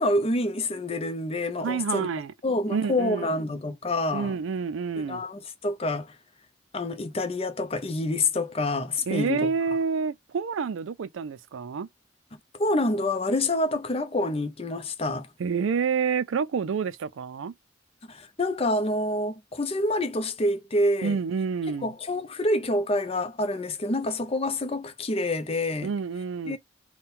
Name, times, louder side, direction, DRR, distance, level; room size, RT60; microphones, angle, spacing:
voice 1, 0.0-2.1 2.4-4.4 5.0-6.2 6.7-9.5 12.6-15.3 18.1-21.2 21.8-25.9 26.5-26.6, left 1 dB, 30° left, 0.6 m, -27 dB
voice 2, 1.6-2.3 2.7-3.4 4.1-5.2 9.1-11.9 15.4-17.5 21.0-21.9 25.8-26.6, right 5 dB, 80° right, 0.4 m, -28 dB
3.7 x 2.2 x 4.1 m
head